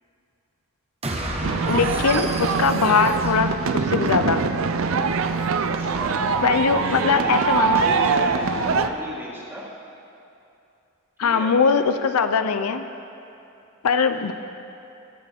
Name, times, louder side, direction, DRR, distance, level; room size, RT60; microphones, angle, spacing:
sound 1, 1.0-4.4, right 1 dB, 30° right, 1.1 m, -31 dB
sound 2, 1.4-8.9, right 5 dB, 60° right, 0.5 m, -23 dB
voice 1, 1.7-4.4 6.4-7.9 11.2-12.9 13.8-14.3, left 5 dB, 80° left, 9 dB, 0.5 m, -21 dB
voice 2, 5.7-6.3 6.6-9.7 11.2-11.5 14.3-14.4, equal, 10° right, -5 dB, 1.9 m, -35 dB
22.0 x 8.4 x 3.5 m, 2.7 s
head